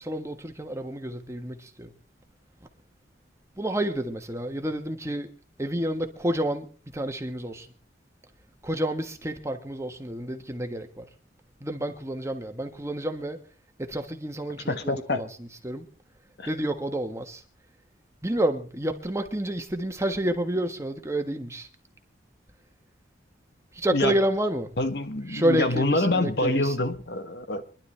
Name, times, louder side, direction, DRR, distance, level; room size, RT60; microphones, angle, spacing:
voice 1, 0.0-1.9 3.5-5.3 5.6-7.7 8.6-11.0 11.6-13.4 13.8-15.9 16.5-17.4 18.2-21.7 23.7-24.7 25.3-26.9, right 1 dB, 15° right, 1.3 m, -29 dB
voice 2, 14.7-15.2 16.4-16.5 23.9-24.2 24.8-27.6, left 2 dB, 60° left, 1.3 m, -26 dB
25.5 x 11.5 x 3.3 m
head